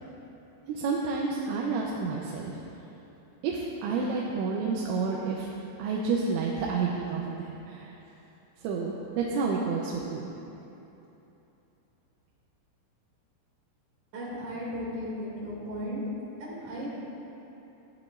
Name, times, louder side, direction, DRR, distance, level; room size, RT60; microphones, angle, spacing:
voice 1, 0.7-2.6 3.4-5.5 5.8-7.9 8.6-10.3, right 4 dB, 80° right, -3 dB, 3.0 m, -30 dB
voice 2, 14.1-16.0 16.4-17.0, equal, 45° right, -6 dB, 3.3 m, -36 dB
14.5 x 11.0 x 2.5 m, 3.0 s
omnidirectional pair, 5.4 m